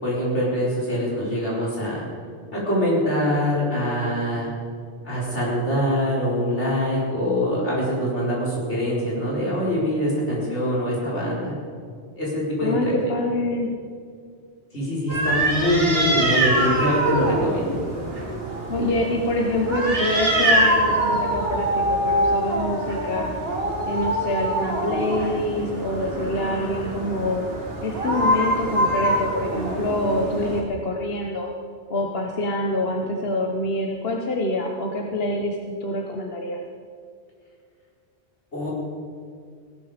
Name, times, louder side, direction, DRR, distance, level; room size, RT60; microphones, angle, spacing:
voice 1, 0.0-2.0 2.5-4.5 5.0-11.5 12.2-12.9 14.7-17.8 38.5-38.7, equal, 85° left, -6 dB, 5.1 m, -24 dB
voice 2, 12.6-13.7 18.7-23.4 23.9-27.4 27.8-31.5 31.9-36.6, left 1 dB, 60° left, 2 dB, 1.4 m, -26 dB
sound 1, 15.1-30.6, right 1 dB, 60° right, 2.4 m, -24 dB
17.0 x 12.5 x 5.1 m, 2.2 s
omnidirectional pair, 1.2 m